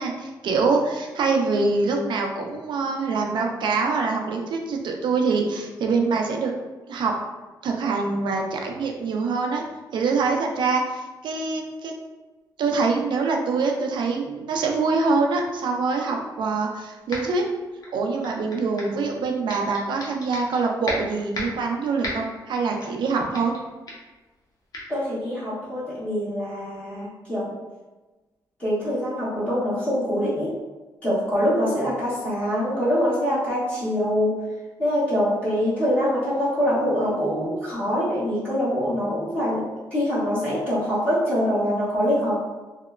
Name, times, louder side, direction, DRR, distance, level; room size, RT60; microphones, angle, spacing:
voice 1, 0.0-6.5 6.9-7.1 7.6-9.6 9.9-11.9 12.6-17.4 17.9-23.5, right 4 dB, 70° right, 1 dB, 0.4 m, -24 dB
sound 1, 17.1-17.4 17.8-19.0 19.5-20.6 20.9-21.6 22.0-22.4 22.8-23.1 23.3-23.6 23.9-24.1 24.7-24.9, left 1 dB, 50° left, 0.8 m, -34 dB
voice 2, 24.9-27.5 28.6-30.5 31.0-34.3 34.8-39.6 39.9-42.3, equal, 15° left, -13 dB, 1.2 m, -24 dB
2.8 x 2.1 x 2.3 m, 1.2 s
cardioid pair, 85°, 8 cm